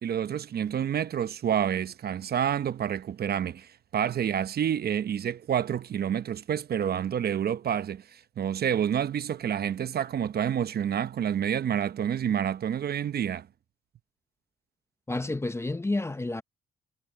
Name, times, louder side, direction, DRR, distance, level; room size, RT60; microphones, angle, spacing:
voice 1, 0.0-13.5, right 9 dB, 50° right, 0.8 m, -28 dB
voice 2, 15.1-16.4, left 2 dB, 15° left, 0.7 m, -30 dB
cardioid pair, 90°, 20 cm